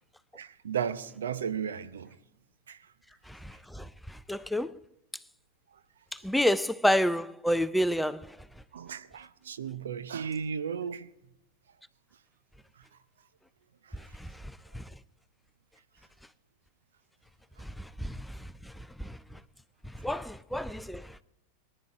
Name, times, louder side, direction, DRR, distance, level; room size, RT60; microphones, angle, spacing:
voice 1, 0.3-2.1 2.7-2.9 8.7-11.1 13.9-14.0, right 7 dB, 65° right, 0.7 m, -35 dB
voice 2, 3.3-3.9 4.3-4.7 6.2-8.3 14.7-14.8 18.0-18.2 19.0-19.2 20.0-21.1, equal, 5° left, 0.4 m, -28 dB
22.0 x 10.0 x 4.7 m
figure-of-eight pair, 90°, 0 cm